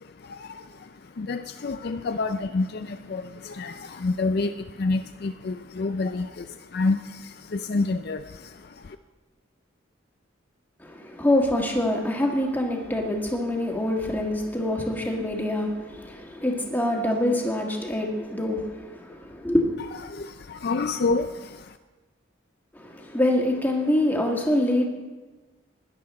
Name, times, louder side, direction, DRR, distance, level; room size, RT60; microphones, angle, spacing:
voice 1, 0.0-9.0 19.9-21.8, left 3 dB, 50° left, 8 dB, 0.4 m, -29 dB
voice 2, 10.8-19.7 22.7-24.9, left 1 dB, 10° left, 0 dB, 1.6 m, -25 dB
17.0 x 11.0 x 4.2 m, 1.2 s
head